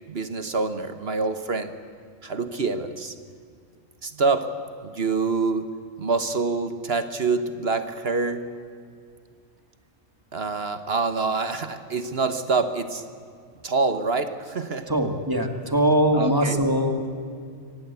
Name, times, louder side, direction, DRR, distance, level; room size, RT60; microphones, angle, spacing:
voice 1, 0.1-1.7 2.2-3.1 4.0-4.5 4.8-8.5 10.3-13.0 13.6-14.9 16.1-16.6, right 4 dB, 50° right, 10 dB, 1.3 m, -26 dB
voice 2, 14.9-17.1, equal, 15° right, 6 dB, 2.0 m, -22 dB
24.5 x 18.5 x 8.3 m, 2.3 s
omnidirectional pair, 1.4 m